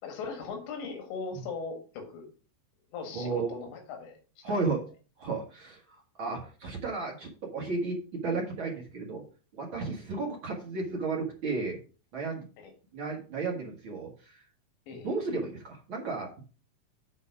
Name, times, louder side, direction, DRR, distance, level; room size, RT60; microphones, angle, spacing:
voice 1, 0.0-2.3 2.9-4.2 4.5-4.6 10.1-10.2 12.6-12.7 14.9-15.2, left 4 dB, 90° left, 4 dB, 4.2 m, -39 dB
voice 2, 3.1-3.5 4.4-4.8 5.2-5.8 6.2-8.0 8.2-9.2 9.5-11.8 12.1-12.4 12.9-14.4 15.0-16.4, right 3 dB, 65° right, -1 dB, 1.2 m, -33 dB
9.0 x 4.4 x 6.0 m, 0.36 s
omnidirectional pair, 4.9 m